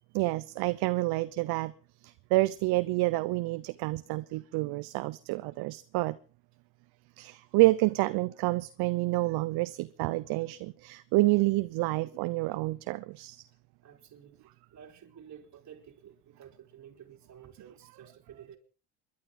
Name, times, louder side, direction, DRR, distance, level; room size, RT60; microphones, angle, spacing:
voice 1, 0.1-1.7 2.0-6.2 7.2-13.4, right 21 dB, 65° right, 0.7 m, -28 dB
voice 2, 13.8-14.4 14.7-18.6, right 8 dB, 45° right, 3.6 m, -52 dB
27.5 x 11.5 x 3.9 m
supercardioid pair, 95°, 41 cm